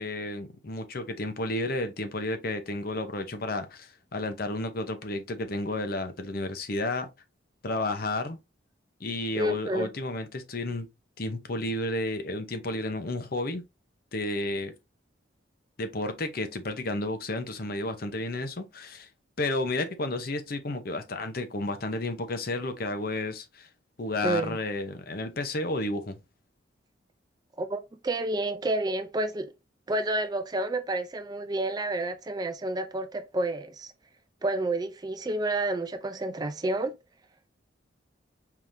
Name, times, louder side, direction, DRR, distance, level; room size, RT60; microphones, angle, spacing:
voice 1, 0.0-7.1 7.6-8.4 9.0-10.9 11.2-13.6 14.1-14.7 15.8-19.1 19.4-23.7 24.0-26.2, left 2 dB, 50° left, 0.8 m, -32 dB
voice 2, 9.3-9.9 24.2-24.6 27.6-29.5 29.9-33.9 34.4-36.9, right 2 dB, 20° right, 0.4 m, -30 dB
4.7 x 3.6 x 2.6 m
head